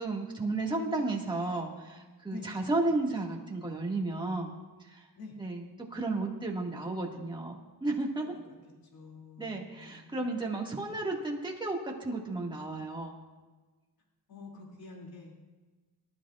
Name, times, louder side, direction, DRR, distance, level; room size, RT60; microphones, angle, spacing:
voice 1, 0.0-4.5 4.9-5.0 5.4-8.3 9.4-13.1, right 2 dB, 10° right, -1 dB, 1.9 m, -33 dB
voice 2, 8.1-8.6 8.9-10.9 14.3-15.4, left 3 dB, 65° left, -1 dB, 2.7 m, -48 dB
23.5 x 12.5 x 2.4 m, 1.3 s
wide cardioid pair, 150°, 39 cm